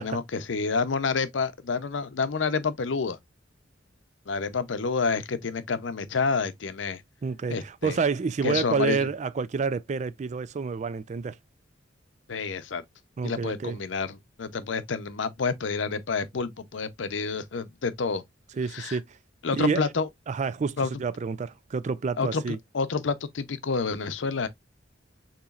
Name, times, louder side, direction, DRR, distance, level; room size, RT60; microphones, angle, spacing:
voice 1, 0.0-3.2 4.3-7.0 7.5-8.0 8.4-9.1 12.3-12.8 13.2-18.2 18.7-19.0 19.4-20.1 20.8-20.9 22.2-24.5, left 4 dB, 80° left, 0.6 m, -29 dB
voice 2, 7.2-11.3 13.2-13.8 18.6-19.0 19.5-19.8 20.3-22.6, right 5 dB, 40° right, 0.4 m, -28 dB
6.9 x 3.0 x 2.4 m
head